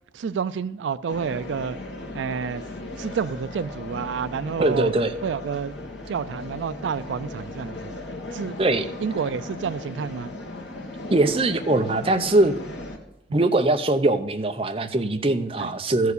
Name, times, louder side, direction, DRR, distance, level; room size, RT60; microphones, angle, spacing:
voice 1, 0.1-1.8 2.1-2.6 3.0-4.9 5.2-5.8 6.1-7.9 8.3-8.6 9.0-10.3 13.3-13.4 15.6-15.7, right 6 dB, 90° right, 14 dB, 0.4 m, -29 dB
sound 1, 1.1-13.0, left 2 dB, 75° left, 1.9 m, -37 dB
voice 2, 4.6-5.1 8.6-8.9 11.1-12.6 13.3-16.1, right 2 dB, 30° right, 7 dB, 0.7 m, -21 dB
13.5 x 4.7 x 8.2 m, 0.82 s
head